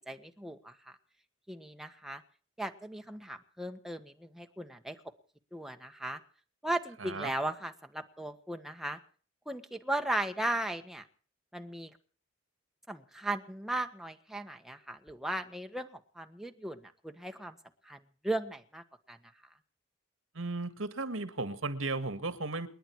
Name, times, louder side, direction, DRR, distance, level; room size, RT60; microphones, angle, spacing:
voice 1, 0.1-0.7 1.5-2.2 2.6-5.0 5.5-6.2 6.6-9.0 9.4-11.1 11.5-11.9 12.9-17.6 17.8-19.2, right 1 dB, ahead, 1.5 m, -37 dB
voice 2, 7.0-7.3 20.3-22.7, right 3 dB, 75° right, 1.8 m, -35 dB
30.0 x 10.5 x 4.7 m
head